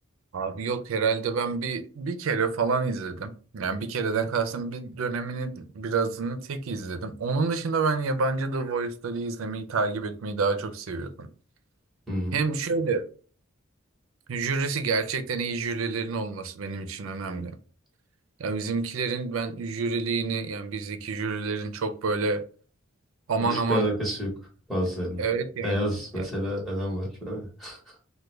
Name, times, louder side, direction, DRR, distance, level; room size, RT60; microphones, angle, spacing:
voice 1, 0.3-11.3 12.3-13.1 14.3-17.5 18.4-22.4 23.3-23.9 25.2-26.2, right 4 dB, 75° right, 0.4 m, -28 dB
voice 2, 23.4-24.3 24.7-25.2 25.6-27.8, equal, ahead, 1.0 m, -29 dB
3.4 x 2.2 x 3.1 m
head